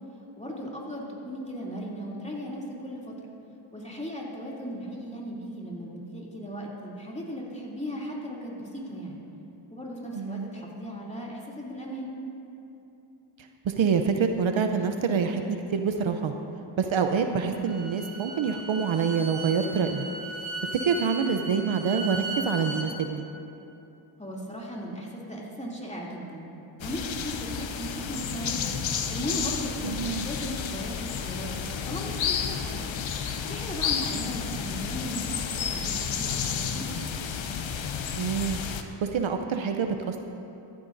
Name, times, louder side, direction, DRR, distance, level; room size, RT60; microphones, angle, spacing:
voice 1, 0.4-3.1 3.7-9.2 9.7-12.1 24.2-26.5 26.8-28.7 29.1-32.9 33.5-37.0, equal, 15° left, -4 dB, 2.8 m, -37 dB
voice 2, 10.1-10.5 13.6-16.3 16.8-20.1 20.8-23.3 29.8-30.3 38.1-38.6 39.0-40.2, right 6 dB, 65° right, 6 dB, 0.7 m, -26 dB
Bowed string instrument, 17.5-22.9, right 2 dB, 25° right, 2.3 m, -37 dB
sound 1, 26.8-38.8, left 7 dB, 65° left, 0.8 m, -31 dB
14.5 x 13.5 x 2.6 m, 2.8 s
cardioid pair, 50°, 50 cm